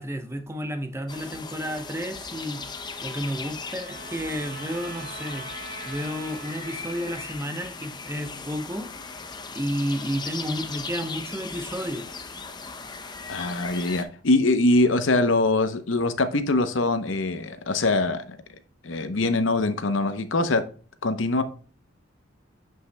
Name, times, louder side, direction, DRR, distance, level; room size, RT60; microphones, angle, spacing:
voice 1, 0.0-2.6 3.0-5.4 5.9-8.9 9.5-12.1, equal, 15° right, 0.8 m, -31 dB
sound 1, 1.1-14.0, left 4 dB, 20° left, 0.6 m, -38 dB
Trumpet, 2.8-7.5, right 2 dB, 45° right, 2.8 m, -43 dB
voice 2, 13.3-18.4 18.8-20.6 21.0-21.4, left 2 dB, 70° left, 0.8 m, -23 dB
9.3 x 5.5 x 2.2 m
head